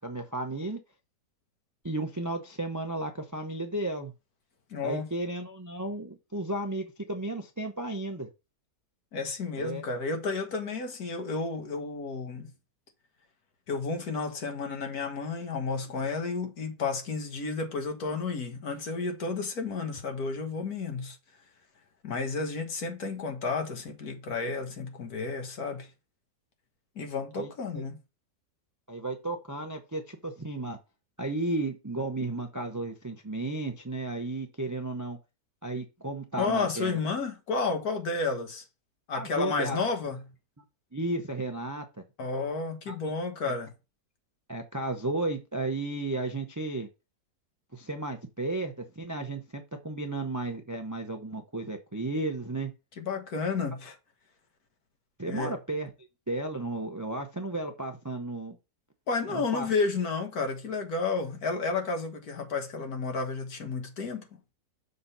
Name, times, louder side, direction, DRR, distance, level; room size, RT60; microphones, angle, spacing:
voice 1, 0.0-0.8 1.8-4.1 4.8-8.3 9.6-9.8 27.3-27.5 28.9-30.8 31.2-35.2 35.6-37.0 39.1-39.8 40.9-41.8 42.9-43.0 43.5-43.6 44.5-46.9 47.7-52.7 55.2-55.9 56.3-58.6 59.3-59.7, right 2 dB, 25° right, 0.4 m, -33 dB
voice 2, 4.7-5.1 9.1-12.5 13.7-21.2 22.0-25.9 27.0-28.0 36.4-38.6 39.1-40.2 42.2-43.7 53.0-54.0 55.3-55.5 59.1-64.4, left 4 dB, 60° left, 1.8 m, -31 dB
6.8 x 3.9 x 5.5 m
omnidirectional pair, 1.8 m